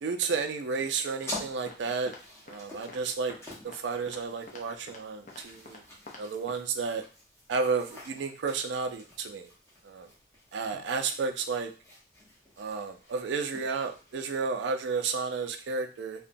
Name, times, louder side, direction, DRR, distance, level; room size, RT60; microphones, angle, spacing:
voice 1, 0.0-2.1 2.5-3.4 3.6-5.8 6.2-7.0 7.5-9.5 9.8-10.1 10.5-11.7 12.6-16.3, right 4 dB, 80° right, 6 dB, 0.4 m, -32 dB
sound 1, 1.2-14.7, left 1 dB, 15° left, 0.8 m, -47 dB
sound 2, 1.3-1.8 2.1-2.2 2.5-2.6 2.9-3.0 3.3-3.4 3.7-3.8 4.1-4.2 4.5-4.6 4.9-5.0 5.3-5.8 6.1-6.2 6.5-6.6, left 3 dB, 40° left, 0.5 m, -46 dB
2.8 x 2.2 x 2.5 m, 0.37 s
head